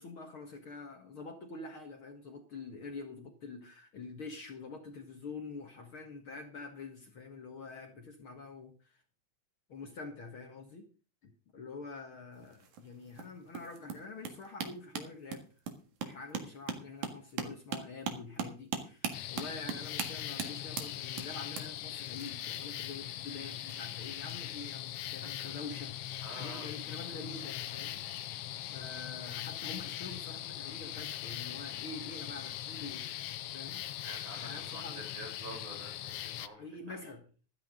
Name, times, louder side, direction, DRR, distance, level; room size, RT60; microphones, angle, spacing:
voice 1, 0.0-9.0 9.7-10.9 11.2-15.5 16.1-28.0 28.7-33.1 33.5-34.0 34.4-35.1 36.6-37.2, left 3 dB, 50° left, 4 dB, 2.2 m, -46 dB
sound 1, 12.3-24.3 25.3-25.5 25.8-25.9, right 6 dB, 80° right, 3.2 m, -41 dB
sound 2, 19.1-36.5, left 12 dB, 80° left, 1.3 m, -41 dB
voice 2, 25.2-25.6 26.2-26.7 34.0-36.7, right 1 dB, 55° right, 0 dB, 7.1 m, -48 dB
14.5 x 12.5 x 3.8 m, 0.36 s
omnidirectional pair, 3.5 m